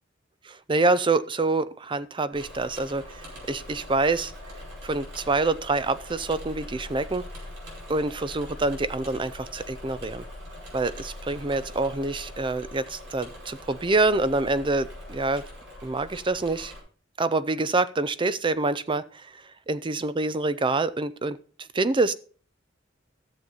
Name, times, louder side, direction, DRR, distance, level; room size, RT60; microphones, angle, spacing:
voice 1, 0.4-4.3 4.8-7.2 7.9-10.3 10.7-15.4 15.8-16.7 17.2-22.1, right 3 dB, 25° right, 15 dB, 0.5 m, -26 dB
Engine / Mechanisms, 2.3-16.8, left 1 dB, 65° right, 4.9 m, -42 dB
13.5 x 7.1 x 3.9 m, 0.40 s
head